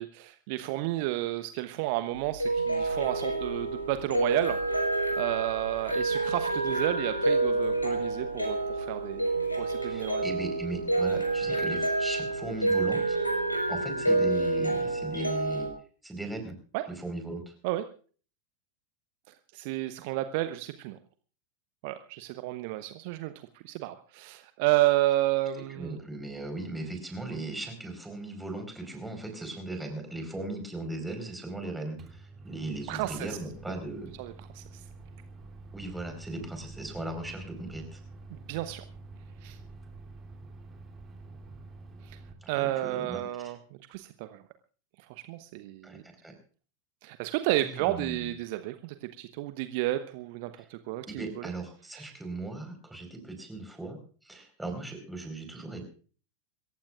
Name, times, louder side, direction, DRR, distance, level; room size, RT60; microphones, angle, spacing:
voice 1, 0.0-4.6 5.2-10.2 16.7-16.8 17.6-17.8 19.5-21.0 21.8-23.3 23.6-26.0 32.9-33.4 34.2-34.8 38.3-38.8 39.4-39.6 42.0-42.2 42.5-43.6 43.9-44.4 45.1-46.0 47.0-51.5 51.9-52.0, right 16 dB, 45° right, 10 dB, 0.9 m, -31 dB
sound 1, 2.1-15.7, right 2 dB, 85° left, 5.1 m, -28 dB
voice 2, 9.8-13.2 13.7-15.7 16.0-16.6 17.0-17.5 25.7-34.1 35.7-38.0 42.4-43.5 45.8-46.3 47.5-48.3 51.1-54.0 54.2-55.8, right 2 dB, 5° right, 4 dB, 4.6 m, -38 dB
Microwave oven, 32.0-42.3, right 3 dB, 25° right, 2.9 m, -47 dB
26.5 x 15.0 x 2.5 m, 0.42 s
figure-of-eight pair, 90°, 0 cm